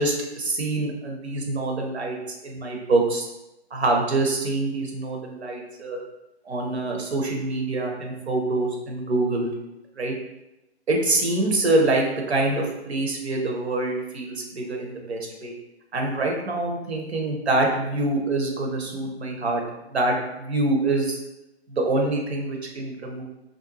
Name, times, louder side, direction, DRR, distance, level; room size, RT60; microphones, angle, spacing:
voice 1, 0.0-2.2 2.4-3.3 3.7-6.0 6.5-9.5 10.0-10.1 10.9-15.5 15.9-19.6 19.9-21.2 21.7-23.2, right 2 dB, 75° right, 0 dB, 0.7 m, -25 dB
2.5 x 2.1 x 2.9 m, 0.92 s
figure-of-eight pair, 130°, 33 cm